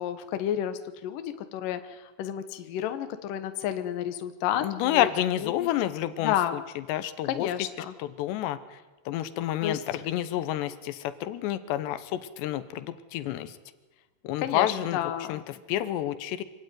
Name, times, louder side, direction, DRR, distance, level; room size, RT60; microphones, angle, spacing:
voice 1, 0.0-5.1 5.4-5.7 6.2-6.6 7.3-7.9 9.6-10.0 14.4-15.4, left 10 dB, 65° left, 9 dB, 2.6 m, -31 dB
voice 2, 4.6-6.3 6.9-7.5 8.0-8.8 9.1-13.6 14.2-15.0 15.3-16.4, left 12 dB, 90° left, 13 dB, 3.2 m, -29 dB
25.5 x 17.0 x 9.4 m, 1.2 s
omnidirectional pair, 4.8 m